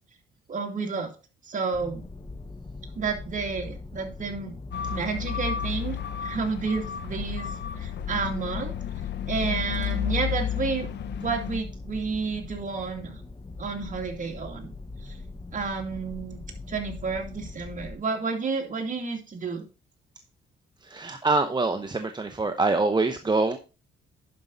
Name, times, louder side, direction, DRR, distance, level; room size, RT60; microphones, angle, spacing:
voice 1, 0.5-1.1 1.4-2.1 2.9-4.6 4.9-7.5 7.8-8.7 9.3-10.9 11.2-13.2 13.6-14.7 15.0-15.2 15.5-19.6, right 4 dB, 40° right, 2 dB, 2.5 m, -31 dB
sound 1, 1.7-18.0, left 3 dB, 20° left, 0.9 m, -42 dB
sound 2, 4.7-11.6, left 9 dB, 60° left, 0.7 m, -32 dB
voice 2, 20.8-23.6, right 3 dB, 20° right, 7 dB, 0.8 m, -25 dB
11.0 x 5.4 x 3.9 m, 0.33 s
cardioid pair, 90°, 20 cm